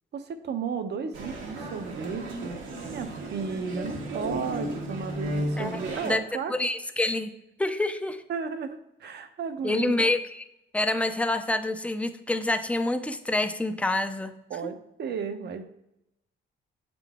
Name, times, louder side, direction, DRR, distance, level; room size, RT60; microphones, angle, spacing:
voice 1, 0.1-2.6 2.9-6.5 8.3-10.1 14.5-15.6, right 6 dB, 60° right, 8 dB, 0.7 m, -34 dB
Male speech man speaking, 1.1-6.1, right 1 dB, 85° right, 1.3 m, -34 dB
voice 2, 5.6-6.2 6.5-7.3 7.6-8.2 9.6-10.4 10.7-14.3, left 2 dB, 5° left, 9 dB, 0.5 m, -27 dB
8.0 x 3.8 x 3.5 m, 0.85 s
cardioid pair, 90°, 20 cm